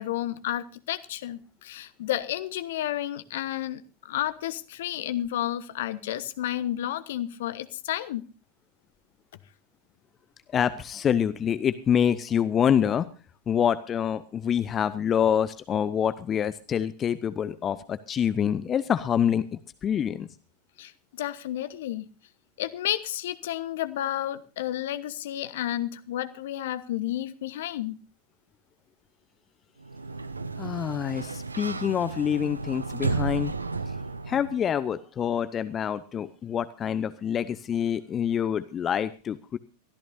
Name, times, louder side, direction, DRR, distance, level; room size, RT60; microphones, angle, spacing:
voice 1, 0.0-8.2 20.8-22.1 22.6-28.0, left 12 dB, 55° left, 14 dB, 1.1 m, -31 dB
voice 2, 10.5-13.1 13.5-20.3 30.6-33.5 34.3-39.6, left 8 dB, 25° left, 15 dB, 0.7 m, -26 dB
Sliding door, 29.8-34.7, right 3 dB, 80° right, 0.7 m, -33 dB
23.0 x 14.0 x 2.7 m, 0.33 s
figure-of-eight pair, 90°, 0 cm